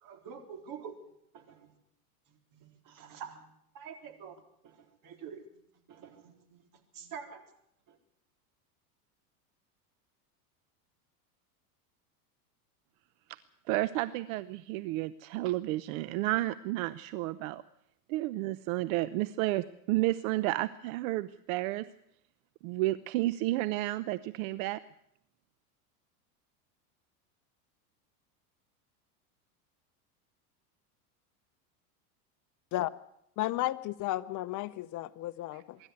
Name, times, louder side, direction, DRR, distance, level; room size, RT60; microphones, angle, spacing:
voice 1, 0.0-1.0 1.3-1.7 2.5-3.5 3.7-5.4 5.9-6.6 6.9-7.4 7.9-8.0, right 7 dB, 45° right, 4.0 m, -47 dB
voice 2, 13.7-17.6 18.1-21.8 22.6-24.8 35.5-35.6, right 17 dB, 65° right, 0.8 m, -31 dB
voice 3, 33.4-35.8, left 16 dB, 40° left, 0.8 m, -33 dB
24.5 x 12.0 x 9.5 m
supercardioid pair, 110°, 45 cm